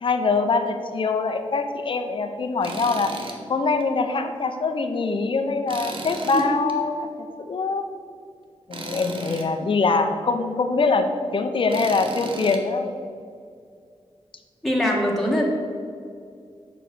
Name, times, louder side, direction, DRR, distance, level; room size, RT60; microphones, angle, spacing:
voice 1, 0.0-3.1 3.5-6.9 7.5-7.8 8.7-11.1 11.3-13.0, left 4 dB, 55° left, 6 dB, 0.8 m, -23 dB
Tools, 2.6-3.4 3.8-3.9 5.7-6.7 8.7-9.5 11.7-12.6, right 2 dB, 55° right, 1.0 m, -35 dB
voice 2, 6.3-6.6 14.6-15.4, left 1 dB, ahead, -3 dB, 1.4 m, -23 dB
7.0 x 4.8 x 6.4 m, 2.2 s
wide cardioid pair, 95°, 11 cm